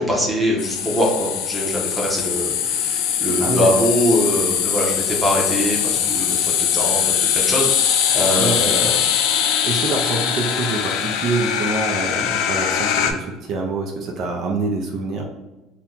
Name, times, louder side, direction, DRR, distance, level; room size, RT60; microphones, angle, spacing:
voice 1, 0.0-8.9, equal, ahead, -3 dB, 0.8 m, -23 dB
sound 1, 0.6-13.1, left 8 dB, 70° left, 0.3 m, -21 dB
voice 2, 8.3-8.9 9.6-15.2, right 3 dB, 50° right, 1 dB, 0.5 m, -25 dB
2.7 x 2.2 x 3.7 m, 1.1 s
cardioid pair, 115°, 0 cm